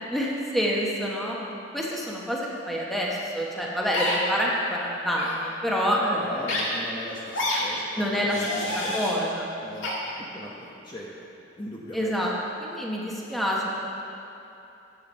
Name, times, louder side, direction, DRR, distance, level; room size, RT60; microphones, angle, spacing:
voice 1, 0.1-1.4 1.7-6.2 8.0-8.4 8.7-9.6 11.9-12.3 12.6-13.8, equal, ahead, -4 dB, 1.2 m, -27 dB
sound 1, 3.9-4.2 5.1-5.3 6.5-6.6 7.3-7.6 8.3-9.1 9.8-9.9, left 2 dB, 90° left, 1.9 m, -28 dB
voice 2, 5.9-9.1 9.6-9.9 10.3-11.3 11.6-12.2, left 1 dB, 25° left, -4 dB, 1.0 m, -37 dB
9.0 x 8.1 x 5.6 m, 2.9 s
head